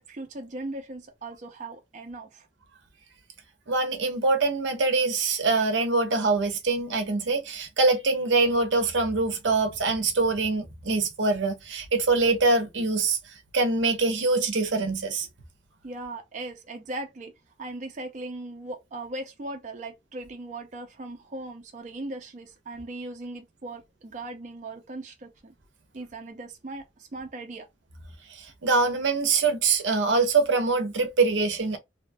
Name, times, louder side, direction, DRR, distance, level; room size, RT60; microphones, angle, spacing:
voice 1, 0.0-2.5 15.8-17.3 17.6-25.5 25.9-27.7, right 2 dB, 40° right, 0.5 m, -38 dB
voice 2, 3.7-13.2 13.5-15.3 28.3-31.8, right 3 dB, 85° right, 0.7 m, -24 dB
2.7 x 2.2 x 2.6 m
head